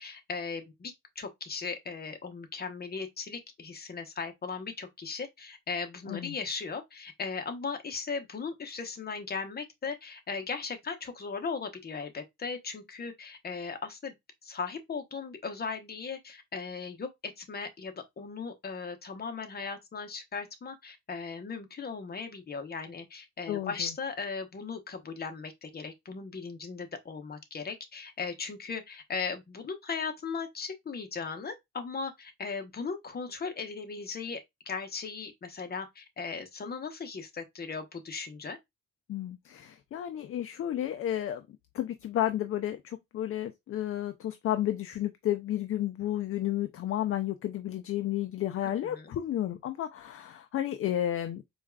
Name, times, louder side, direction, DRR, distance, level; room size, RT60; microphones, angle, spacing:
voice 1, 0.0-14.1 14.4-34.4 34.7-38.6 48.6-49.1, left 5 dB, 30° left, 0.9 m, -37 dB
voice 2, 23.5-23.9 39.1-41.4 41.7-51.5, left 12 dB, 50° left, 0.4 m, -32 dB
4.5 x 2.4 x 2.2 m
cardioid pair, 90°, 30 cm